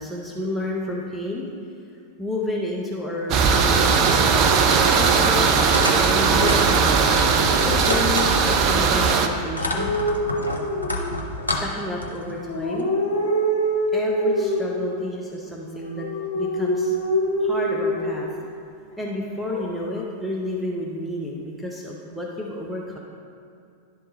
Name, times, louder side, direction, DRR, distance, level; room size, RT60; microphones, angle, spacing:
voice 1, 0.0-1.5 2.2-4.4 4.9-5.5 5.9-7.1 7.6-10.0 11.5-12.9 13.9-16.1 16.3-17.0 17.4-18.3 19.0-23.0, left 1 dB, ahead, -4 dB, 0.7 m, -30 dB
sound 1, 3.3-9.3, right 5 dB, 40° right, 0.5 m, -18 dB
sound 2, 5.7-8.7 9.1-12.3, left 2 dB, 80° left, 0.7 m, -29 dB
sound 3, 9.8-11.4 12.2-14.9 15.8-18.3 19.4-20.0, equal, 60° left, 1.1 m, -25 dB
10.5 x 3.7 x 4.1 m, 2.4 s
figure-of-eight pair, 90°, 0 cm